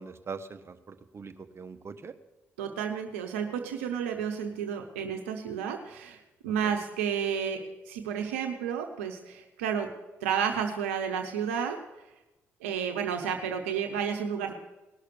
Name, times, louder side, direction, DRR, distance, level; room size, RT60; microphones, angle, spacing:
voice 1, 0.0-2.1 6.6-6.7, right 5 dB, 40° right, 9 dB, 1.1 m, -42 dB
voice 2, 2.6-9.9 10.2-11.8 12.6-14.5, right 7 dB, 90° right, 4 dB, 0.9 m, -31 dB
19.0 x 6.5 x 6.9 m, 1.0 s
hypercardioid pair, 50°, 7 cm